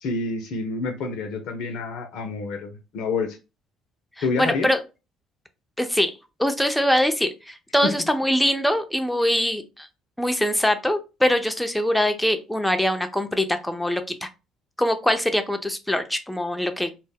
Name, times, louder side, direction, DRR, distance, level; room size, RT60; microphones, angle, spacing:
voice 1, 0.0-3.4 4.2-4.7 7.8-7.9, left 4 dB, 65° left, 5 dB, 0.4 m, -28 dB
voice 2, 4.4-4.8 5.8-9.9 10.2-14.3 14.8-16.9, left 1 dB, 5° left, 7 dB, 0.4 m, -23 dB
2.1 x 2.0 x 3.3 m, 0.30 s
hypercardioid pair, 60°, 0 cm